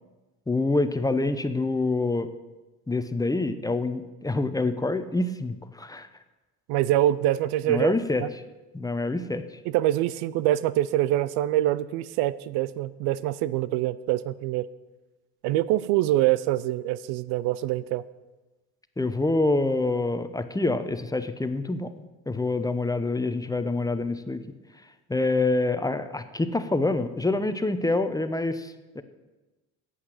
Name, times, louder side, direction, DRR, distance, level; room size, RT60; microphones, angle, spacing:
voice 1, 0.5-2.3 2.9-6.1 7.7-8.2 8.7-9.4 19.0-21.9 22.3-24.4 25.1-29.0, left 2 dB, 10° left, 9 dB, 0.7 m, -26 dB
voice 2, 6.7-7.9 8.2-8.3 9.7-14.7 15.4-18.0, right 14 dB, 85° right, 18 dB, 0.6 m, -25 dB
8.7 x 8.3 x 7.7 m, 1.1 s
supercardioid pair, 90°, 38 cm